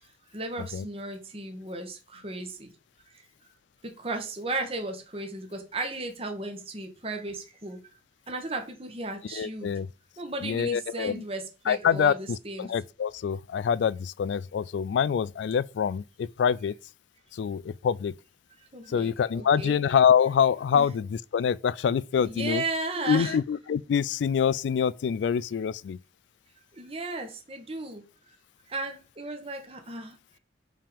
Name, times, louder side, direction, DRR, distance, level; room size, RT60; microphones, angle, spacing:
voice 1, 0.3-2.7 4.0-7.8 8.3-9.7 10.2-12.7 18.7-19.8 20.7-20.9 22.2-23.4 26.8-28.0 28.7-30.2, right 2 dB, 35° right, 1.2 m, -35 dB
voice 2, 9.3-9.9 10.4-11.2 11.7-12.1 12.6-16.7 17.3-18.1 18.9-22.6 23.1-26.0, left 7 dB, 85° left, 0.3 m, -25 dB
5.5 x 3.6 x 5.0 m
head